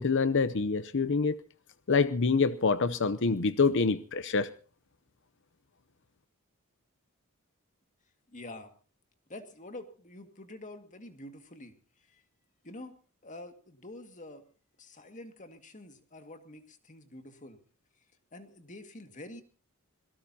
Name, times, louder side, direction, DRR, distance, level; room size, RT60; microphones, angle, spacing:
voice 1, 0.0-1.4 1.9-4.5, left 4 dB, 55° left, 15 dB, 0.7 m, -26 dB
voice 2, 8.3-8.7 9.3-12.2 12.6-13.0 13.2-14.4 14.8-17.6 18.3-19.4, left 1 dB, 35° left, 7 dB, 2.0 m, -47 dB
26.0 x 18.0 x 2.8 m, 0.38 s
head